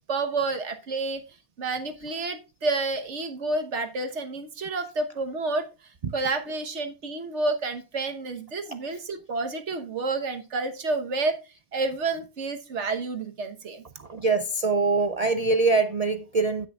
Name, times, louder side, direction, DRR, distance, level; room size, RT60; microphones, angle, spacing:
voice 1, 0.1-1.2 1.6-5.7 6.1-11.4 11.7-13.8, right 3 dB, 55° right, 1.4 m, -29 dB
voice 2, 14.0-16.7, right 3 dB, 80° right, 0.3 m, -23 dB
16.5 x 6.2 x 2.3 m
omnidirectional pair, 1.4 m